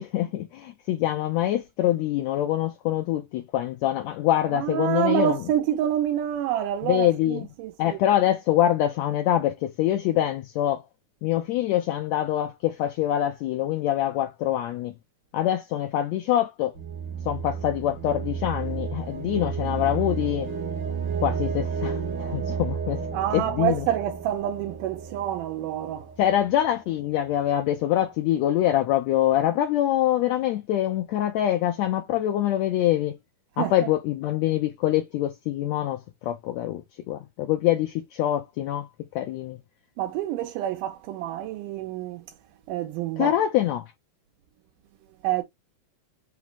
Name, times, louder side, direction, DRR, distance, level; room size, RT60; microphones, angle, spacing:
voice 1, 0.0-5.4 6.8-7.5 7.8-10.8 11.2-14.9 15.3-16.7 17.2-20.5 21.2-23.1 23.3-23.8 26.2-33.2 33.6-38.9 39.1-39.6 43.2-43.9, left 12 dB, 80° left, 1.5 m, -25 dB
voice 2, 4.5-8.0 21.1-21.2 22.2-22.3 23.1-26.1 33.6-33.7 40.0-42.2 42.7-43.4 45.2-45.4, right 11 dB, 85° right, 2.2 m, -27 dB
sound 1, 16.7-26.6, right 6 dB, 60° right, 1.1 m, -32 dB
5.7 x 2.0 x 4.6 m
omnidirectional pair, 3.8 m